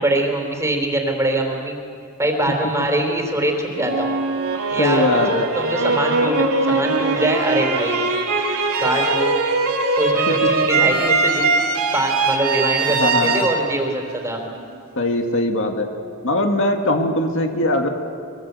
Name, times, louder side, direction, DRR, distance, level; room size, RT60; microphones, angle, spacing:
voice 1, 0.0-1.8 2.2-4.1 4.7-5.0 5.5-8.1 8.8-9.4 10.0-11.5 11.9-14.4, right 1 dB, 15° right, 3 dB, 4.0 m, -23 dB
sound 1, 3.8-14.8, right 3 dB, 80° right, 3.2 m, -21 dB
voice 2, 4.8-5.5 10.3-10.4 12.9-13.5 15.0-15.9 16.2-17.9, left 1 dB, 65° left, 3 dB, 2.2 m, -20 dB
23.5 x 23.5 x 8.3 m, 2.3 s
head